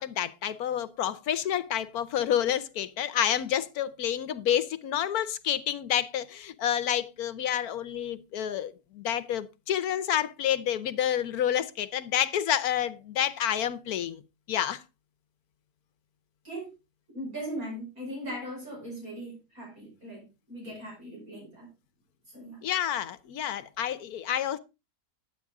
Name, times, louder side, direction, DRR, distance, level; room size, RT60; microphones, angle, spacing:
voice 1, 0.0-14.2 14.5-14.8 22.6-24.6, left 10 dB, 75° left, 1.2 m, -29 dB
voice 2, 17.1-21.7 22.3-22.6, right 1 dB, 65° right, 6.2 m, -39 dB
10.5 x 8.7 x 3.6 m
omnidirectional pair, 1.6 m